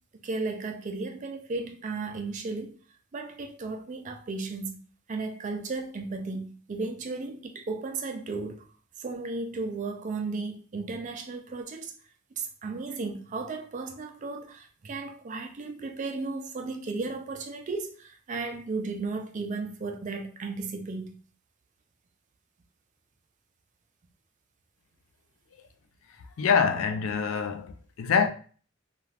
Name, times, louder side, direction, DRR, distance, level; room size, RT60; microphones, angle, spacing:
voice 1, 0.2-2.8 3.1-4.8 5.1-8.7 9.0-11.9 12.4-21.2, right 3 dB, 35° right, 0.4 m, -35 dB
voice 2, 26.4-28.3, left 6 dB, 75° left, 0.4 m, -25 dB
2.4 x 2.3 x 3.2 m
head